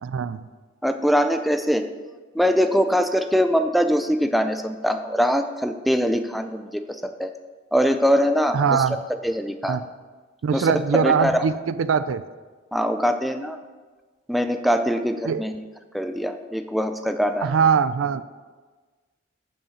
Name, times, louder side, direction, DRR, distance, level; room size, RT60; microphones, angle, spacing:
voice 1, 0.0-0.5 8.5-9.0 9.6-9.8 10.4-12.2 15.3-15.4 17.4-18.2, right 6 dB, 70° right, 14 dB, 0.4 m, -22 dB
voice 2, 0.8-1.9 2.4-7.3 7.7-8.6 9.2-9.8 10.5-11.4 12.7-13.6 14.3-15.5 15.9-17.5, equal, ahead, 7 dB, 0.4 m, -22 dB
7.2 x 5.7 x 5.7 m, 1.3 s
head